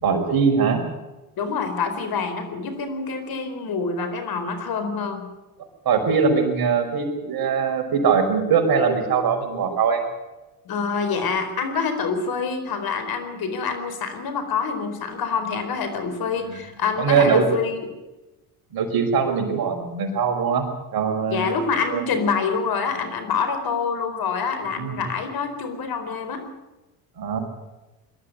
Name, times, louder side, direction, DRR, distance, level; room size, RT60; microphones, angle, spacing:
voice 1, 0.0-0.8 5.9-10.0 17.0-17.5 18.7-20.6 20.9-21.6 21.9-22.0 24.8-25.0 27.2-27.4, right 6 dB, 55° right, 3 dB, 5.7 m, -21 dB
voice 2, 1.4-5.3 10.7-17.8 21.3-26.5, left 5 dB, 55° left, 8 dB, 4.4 m, -26 dB
21.5 x 12.5 x 9.6 m, 1.1 s
hypercardioid pair, 70°, 44 cm